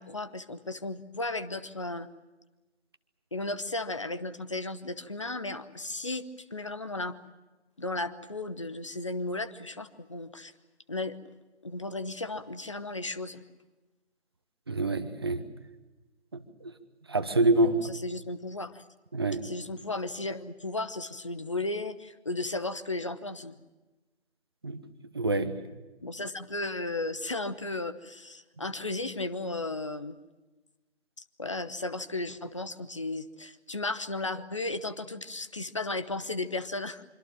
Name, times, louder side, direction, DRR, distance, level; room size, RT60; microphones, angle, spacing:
voice 1, 0.0-2.1 3.3-6.2 6.5-7.2 7.8-10.5 10.9-11.2 11.6-13.4 17.6-18.8 19.4-23.6 26.0-30.2 31.4-37.0, left 2 dB, 25° left, 12 dB, 0.9 m, -35 dB
voice 2, 14.7-15.4 16.3-16.4 17.1-17.7 19.1-19.4 24.6-24.8 25.1-25.5, right 2 dB, 20° right, 9 dB, 1.1 m, -26 dB
25.5 x 25.5 x 7.4 m, 1.1 s
figure-of-eight pair, 160°, 34 cm